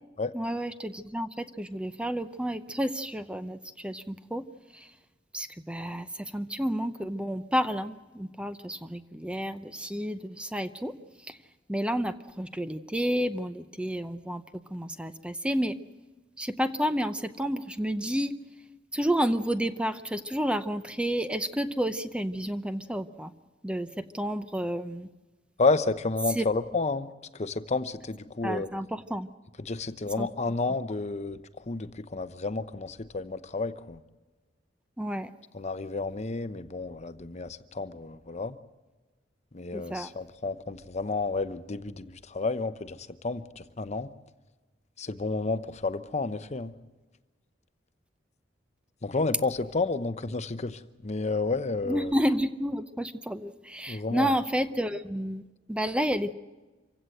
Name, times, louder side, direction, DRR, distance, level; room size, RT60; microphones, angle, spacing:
voice 1, 0.3-4.5 4.7-4.9 5.3-10.9 11.2-11.4 11.7-14.4 14.7-15.8 16.4-18.4 18.9-23.3 23.6-25.1 26.3-26.5 28.4-29.3 30.2-30.3 35.0-35.3 39.7-40.1 51.8-55.4 55.7-56.3, equal, 5° right, 11 dB, 0.7 m, -30 dB
voice 2, 25.6-28.7 29.6-34.0 35.5-38.6 39.5-44.1 45.0-46.7 49.0-52.1 53.9-54.3, left 3 dB, 40° left, 12 dB, 0.8 m, -31 dB
26.5 x 16.0 x 7.8 m, 1.2 s
head